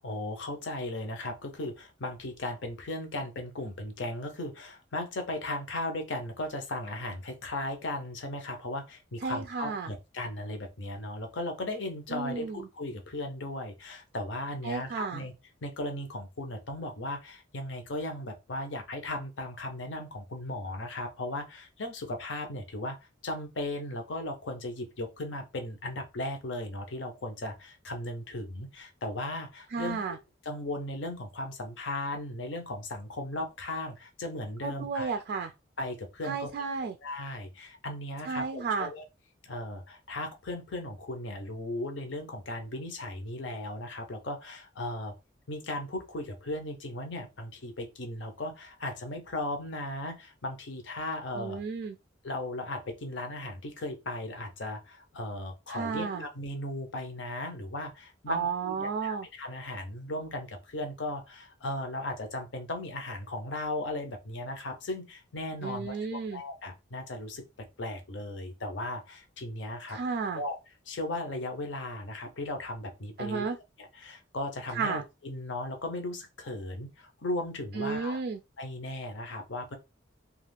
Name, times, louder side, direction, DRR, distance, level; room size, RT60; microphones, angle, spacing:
voice 1, 0.0-15.3 15.6-23.0 23.2-30.0 30.4-35.1 35.8-36.5 37.0-39.0 39.4-45.1 45.5-51.6 52.2-70.0 70.3-70.6 70.9-73.5 73.8-78.2 78.6-79.8, left 1 dB, 70° left, 0.7 m, -37 dB
voice 2, 9.2-9.9 12.1-12.7 14.6-15.2 29.7-30.2 34.6-35.5 36.2-37.0 38.3-38.9 51.4-52.0 55.7-56.3 58.3-59.3 65.6-66.4 69.9-70.4 73.2-73.6 74.7-75.0 77.7-78.4, right 5 dB, 55° right, 0.3 m, -33 dB
2.4 x 2.4 x 3.3 m
head